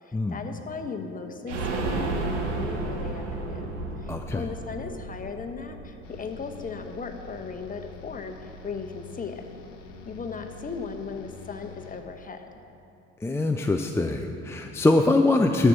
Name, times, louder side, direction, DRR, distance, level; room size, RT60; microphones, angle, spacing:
voice 1, 0.0-3.7 4.0-9.4 10.1-12.5, left 5 dB, 25° left, 5 dB, 1.0 m, -37 dB
sound 1, 1.5-7.1 7.4-7.5 7.8-7.9, right 2 dB, 75° right, 1.1 m, -32 dB
voice 2, 4.1-4.4 13.2-15.7, left 2 dB, 5° left, 3 dB, 0.4 m, -23 dB
sound 2, 6.0-12.3, left 4 dB, 85° left, 0.9 m, -45 dB
13.0 x 4.7 x 6.9 m, 2.8 s
hypercardioid pair, 60°, 36 cm